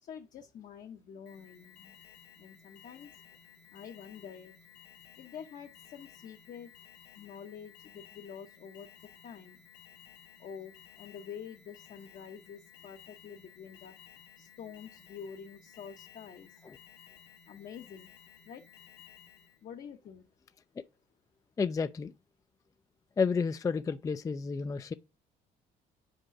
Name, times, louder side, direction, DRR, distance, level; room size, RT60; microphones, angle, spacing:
voice 1, 0.0-1.9 2.4-3.1 3.7-4.6 5.2-6.7 7.1-8.9 9.2-9.6 10.4-13.9 14.4-16.6 17.5-18.1 18.4-18.6 19.6-20.2, left 7 dB, 55° left, 0.9 m, -47 dB
Alarm, 1.3-19.7, left 8 dB, 80° left, 1.8 m, -56 dB
voice 2, 21.6-22.1 23.2-24.9, left 5 dB, 20° left, 0.4 m, -31 dB
5.2 x 4.9 x 5.9 m
cardioid pair, 110°, 17 cm